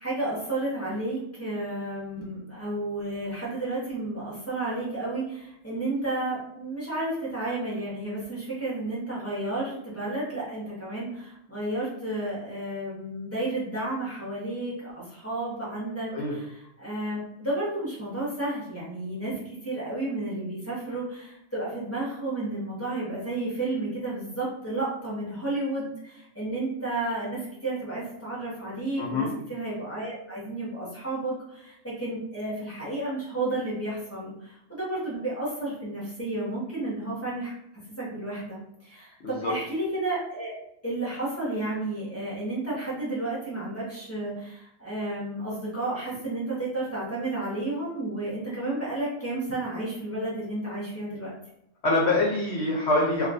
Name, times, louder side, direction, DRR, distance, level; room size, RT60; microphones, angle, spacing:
voice 1, 0.0-37.5 38.0-40.5 40.8-51.3, right 2 dB, 10° left, -8 dB, 1.1 m, -32 dB
voice 2, 29.0-29.3 39.2-39.5 51.8-53.3, left 2 dB, 60° left, -3 dB, 0.9 m, -25 dB
3.1 x 2.7 x 2.6 m, 0.78 s
omnidirectional pair, 1.4 m